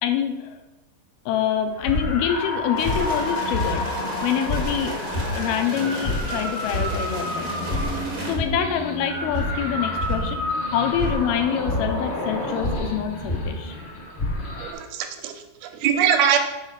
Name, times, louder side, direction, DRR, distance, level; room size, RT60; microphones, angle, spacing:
voice 1, 0.0-0.6 1.3-4.9 5.3-7.5 8.3-10.4 10.7-13.7, left 9 dB, 85° left, 6 dB, 2.6 m, -26 dB
sound 1, 1.8-14.7, left 1 dB, 50° left, 1.5 m, -28 dB
sound 2, 2.7-8.3, right 1 dB, 50° right, 0.9 m, -33 dB
voice 2, 14.6-16.4, right 8 dB, 85° right, 6 dB, 2.7 m, -22 dB
6.1 x 4.8 x 5.7 m, 1.0 s
omnidirectional pair, 4.4 m